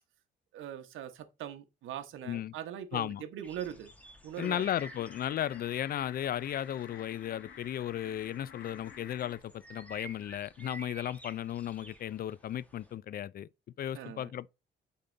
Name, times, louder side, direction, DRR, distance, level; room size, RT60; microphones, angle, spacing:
voice 1, 0.5-3.9 4.2-4.7 13.9-14.3, right 10 dB, 85° right, 1.1 m, -41 dB
voice 2, 2.9-3.2 4.4-13.5 13.8-14.5, left 11 dB, 50° left, 0.4 m, -35 dB
sound 1, 3.4-12.9, right 1 dB, 5° left, 1.5 m, -53 dB
sound 2, 4.4-9.4, left 7 dB, 70° left, 1.7 m, -51 dB
7.7 x 3.7 x 3.8 m
cardioid pair, 90°, 20 cm